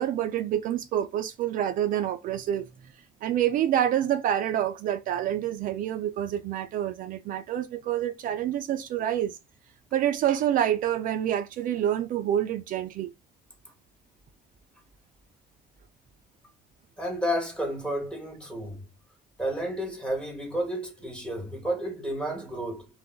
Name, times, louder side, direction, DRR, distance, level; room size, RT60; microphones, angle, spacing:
voice 1, 0.0-2.9 3.2-9.4 9.9-13.1, right 11 dB, 55° right, 0.4 m, -27 dB
voice 2, 17.0-18.8 19.4-22.9, equal, 5° left, 0.8 m, -31 dB
2.2 x 2.0 x 3.6 m
cardioid pair, 135°, 16 cm